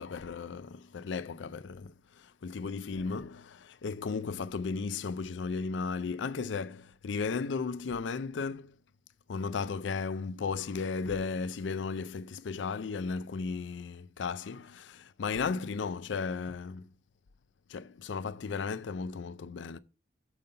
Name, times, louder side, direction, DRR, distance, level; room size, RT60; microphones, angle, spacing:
voice 1, 0.0-8.8 9.3-16.9 17.7-19.8, left 5 dB, 85° left, 0.5 m, -35 dB
6.7 x 5.4 x 5.5 m
head